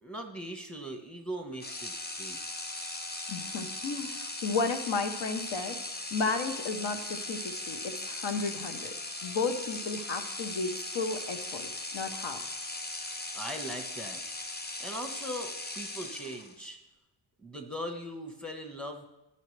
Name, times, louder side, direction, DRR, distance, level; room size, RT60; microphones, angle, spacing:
voice 1, 0.0-2.4 13.3-14.2 14.8-16.8 17.4-19.0, equal, ahead, 4 dB, 1.2 m, -40 dB
sound 1, 1.6-16.6, left 2 dB, 20° left, 0.7 m, -39 dB
voice 2, 3.3-5.8 6.1-9.0 9.2-12.4, left 4 dB, 70° left, 7 dB, 1.1 m, -33 dB
12.0 x 5.6 x 3.3 m, 0.98 s
cardioid pair, 85°, 46 cm